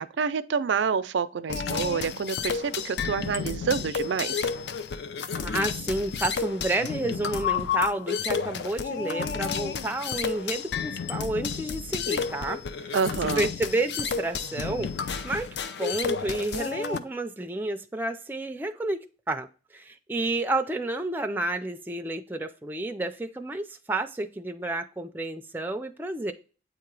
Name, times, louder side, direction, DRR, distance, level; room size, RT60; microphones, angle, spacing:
voice 1, 0.0-4.5 12.9-13.5, right 6 dB, 80° right, 0.4 m, -28 dB
sound 1, 1.5-17.0, left 6 dB, 70° left, 0.4 m, -31 dB
voice 2, 5.4-12.9 13.4-15.5 15.8-26.3, right 2 dB, 10° right, 0.4 m, -30 dB
8.4 x 2.9 x 4.6 m
head